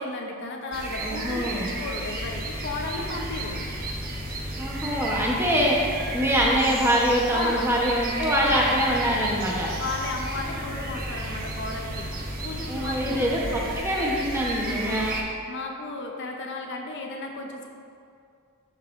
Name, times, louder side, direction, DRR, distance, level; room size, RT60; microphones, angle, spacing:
voice 1, 0.0-3.6 7.3-7.7 9.8-12.1 12.4-13.7 14.6-15.1 15.5-17.7, left 2 dB, 55° left, 2 dB, 0.7 m, -34 dB
sound 1, 0.7-15.2, right 1 dB, 40° right, 0.9 m, -33 dB
voice 2, 1.0-1.7 4.6-5.8 6.1-9.7 12.7-15.2, equal, 10° right, -3 dB, 0.9 m, -24 dB
sound 2, 2.2-13.8, left 1 dB, 20° left, 0.4 m, -39 dB
11.5 x 5.5 x 2.6 m, 2.3 s
head